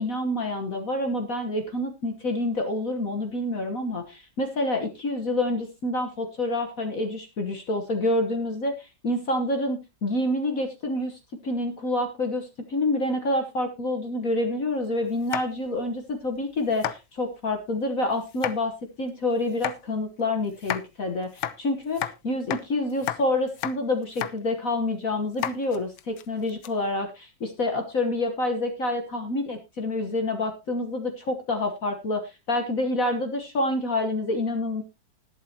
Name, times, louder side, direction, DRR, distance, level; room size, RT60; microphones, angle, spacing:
voice 1, 0.0-34.8, left 2 dB, 50° left, 5 dB, 1.5 m, -28 dB
sound 1, 15.2-15.8 16.2-16.4 16.7-17.0 18.3-18.6 19.5-19.8 20.5-20.8 21.3-22.1 22.5-22.6 22.9-23.2 23.5-23.8 24.0-24.3 24.7-24.8 25.3-26.7, left 11 dB, 85° left, 1.6 m, -32 dB
20.0 x 7.6 x 2.8 m, 0.25 s
omnidirectional pair, 2.1 m